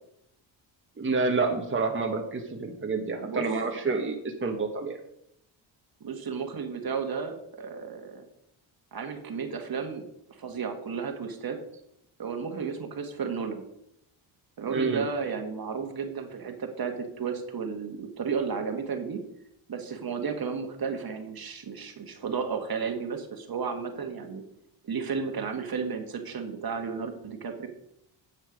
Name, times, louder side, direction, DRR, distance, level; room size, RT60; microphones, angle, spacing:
voice 1, 1.0-4.1 4.4-5.0 14.7-15.0, right 3 dB, 25° right, 2 dB, 1.5 m, -28 dB
voice 2, 3.1-3.4 6.0-8.2 8.9-10.0 10.4-11.6 12.2-13.6 14.6-19.2 19.7-24.4 24.8-27.7, right 5 dB, 45° right, 5 dB, 1.9 m, -33 dB
9.9 x 7.3 x 5.2 m, 0.78 s
cardioid pair, 85°, 48 cm